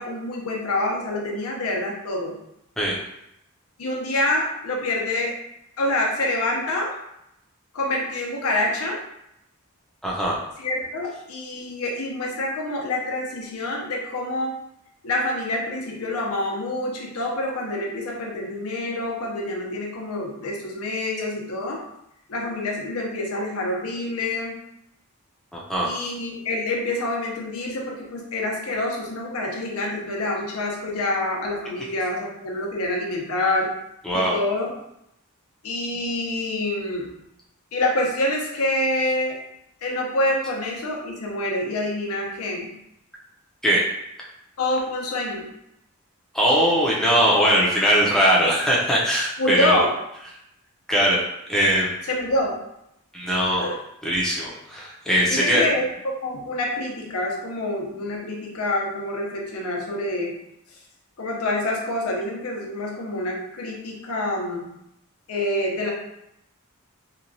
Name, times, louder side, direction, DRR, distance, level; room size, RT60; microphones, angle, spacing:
voice 1, 0.0-2.4 3.8-5.3 5.8-6.9 7.7-9.0 10.6-14.5 15.0-21.8 22.3-24.5 25.8-33.7 34.1-34.7 35.6-37.1 37.7-39.4 39.8-42.7 44.6-45.5 49.4-49.9 52.1-52.6 53.5-53.7 55.3-60.3 61.2-64.7 65.3-65.9, left 1 dB, 75° left, -1 dB, 0.6 m, -26 dB
voice 2, 10.0-10.4 25.5-25.9 34.0-34.4 43.6-43.8 46.3-49.9 50.9-51.2 51.5-52.0 53.1-53.7 54.0-55.6, equal, ahead, -5 dB, 0.5 m, -20 dB
2.9 x 2.3 x 2.6 m, 0.81 s
head